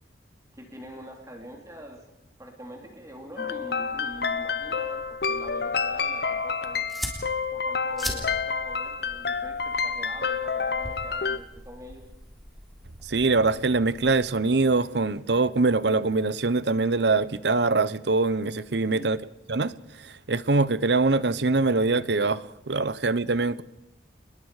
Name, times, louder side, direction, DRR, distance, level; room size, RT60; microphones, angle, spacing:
voice 1, 0.5-2.1 2.4-6.9 7.5-12.1 18.9-19.1, right 1 dB, 20° right, 3.2 m, -44 dB
sound 1, 3.4-11.4, left 5 dB, 60° left, 0.9 m, -29 dB
sound 2, 3.9-14.1, equal, ahead, 3.6 m, -42 dB
voice 2, 13.0-19.2 19.5-23.6, right 3 dB, 70° right, 0.9 m, -23 dB
28.5 x 21.0 x 4.9 m
head